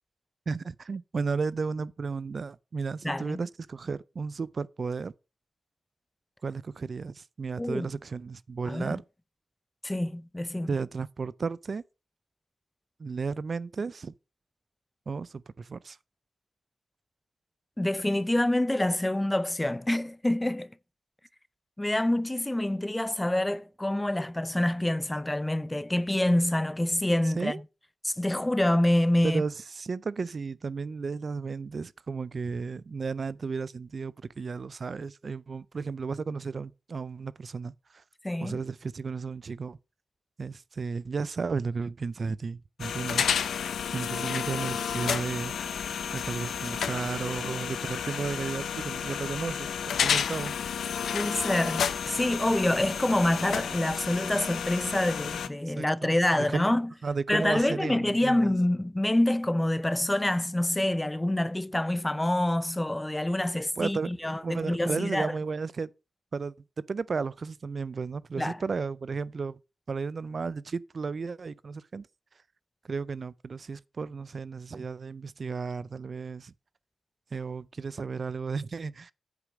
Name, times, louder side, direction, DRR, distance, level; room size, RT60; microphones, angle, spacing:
voice 1, 0.5-5.1 6.4-9.0 10.7-11.8 13.0-14.1 15.1-16.0 27.2-27.6 29.2-38.0 38.4-39.8 40.4-43.3 43.9-45.5 46.1-50.6 55.7-56.7 57.0-58.5 63.5-64.1 64.4-65.9 66.3-66.5 66.9-69.6 69.9-72.1 72.8-76.5 77.3-79.1, right 4 dB, 50° right, 0.4 m, -34 dB
voice 2, 3.0-3.4 7.6-7.9 8.7-9.0 9.8-10.7 17.8-20.7 21.8-27.6 28.0-29.4 38.2-38.6 51.1-56.9 57.3-65.3 68.4-68.6, left 1 dB, 15° left, 0.5 m, -26 dB
sound 1, 42.8-55.5, left 7 dB, 90° left, 0.6 m, -31 dB
8.2 x 5.0 x 5.9 m
cardioid pair, 75°, 0 cm